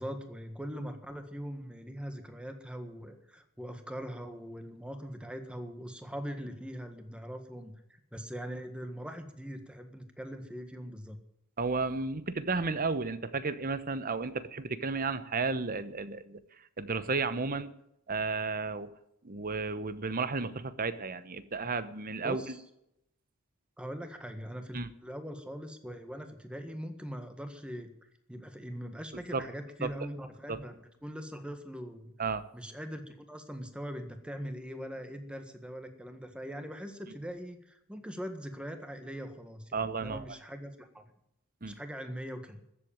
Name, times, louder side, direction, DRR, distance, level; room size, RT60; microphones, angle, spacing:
voice 1, 0.0-7.7 8.1-11.2 22.2-22.6 23.8-27.9 28.3-32.1 32.5-41.1 41.6-42.6, equal, 5° right, 7 dB, 1.6 m, -41 dB
voice 2, 11.6-16.4 16.8-17.7 18.1-18.9 19.2-22.6 24.7-24.9 29.3-29.4 29.8-29.9 30.5-30.6 32.2-32.4 39.7-40.2 41.6-41.7, right 4 dB, 40° right, 13 dB, 0.9 m, -33 dB
14.5 x 8.1 x 8.9 m, 0.80 s
head